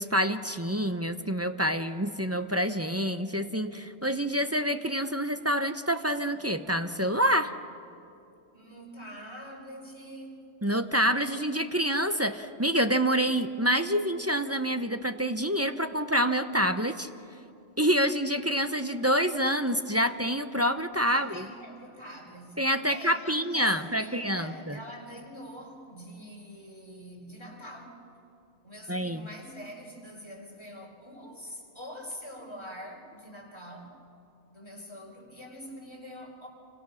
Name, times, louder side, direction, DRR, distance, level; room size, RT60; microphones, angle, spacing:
voice 1, 0.0-7.5 10.6-17.1 17.8-21.4 22.6-24.8 28.9-29.3, equal, 15° right, 8 dB, 0.7 m, -27 dB
voice 2, 8.5-10.4 21.0-28.0 28.6-33.9 34.5-36.5, equal, 20° left, -1 dB, 4.7 m, -45 dB
29.0 x 25.5 x 6.4 m, 2.6 s
omnidirectional pair, 1.2 m